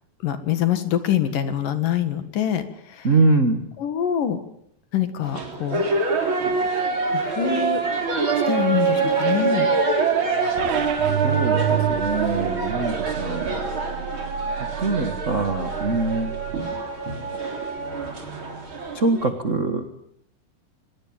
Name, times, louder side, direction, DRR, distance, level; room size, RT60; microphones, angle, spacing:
voice 1, 0.2-3.1 3.8-4.4 4.9-5.9 7.1-7.8 8.5-9.7, left 10 dB, 70° left, 10 dB, 3.4 m, -25 dB
voice 2, 3.0-3.6 11.2-13.4 14.8-16.4 18.9-20.0, right 3 dB, 55° right, 7 dB, 0.8 m, -23 dB
sound 1, 5.3-19.3, right 4 dB, 35° right, 4.2 m, -25 dB
sound 2, 10.6-16.6, right 11 dB, 85° right, 3.1 m, -30 dB
24.0 x 21.0 x 8.9 m, 0.73 s
omnidirectional pair, 4.1 m